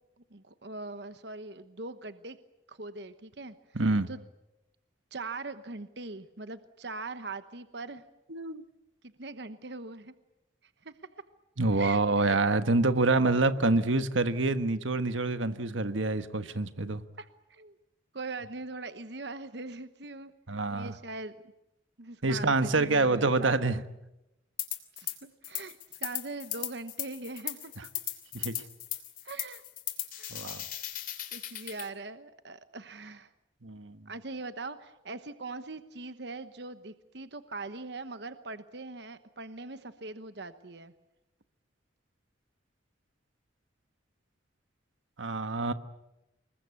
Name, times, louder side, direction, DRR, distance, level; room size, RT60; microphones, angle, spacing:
voice 1, 0.3-2.4 2.7-3.5 4.1-4.3 5.1-8.0 9.0-10.1 10.8-10.9 11.7-12.4 17.2-17.7 18.1-20.3 20.7-21.3 22.0-23.8 25.0-27.7 29.2-29.6 30.1-30.6 31.3-33.3 34.1-40.9, right 3 dB, 60° right, 11 dB, 1.1 m, -41 dB
voice 2, 3.7-4.1 8.3-8.6 11.6-17.0 20.5-20.9 22.2-23.8 28.3-28.5 30.3-30.6 33.6-34.0 45.2-45.7, right 3 dB, 85° right, 11 dB, 1.4 m, -26 dB
sound 1, 24.6-25.2 25.4-31.9, left 13 dB, 45° left, 2.9 m, -37 dB
26.5 x 21.5 x 8.5 m, 0.92 s
head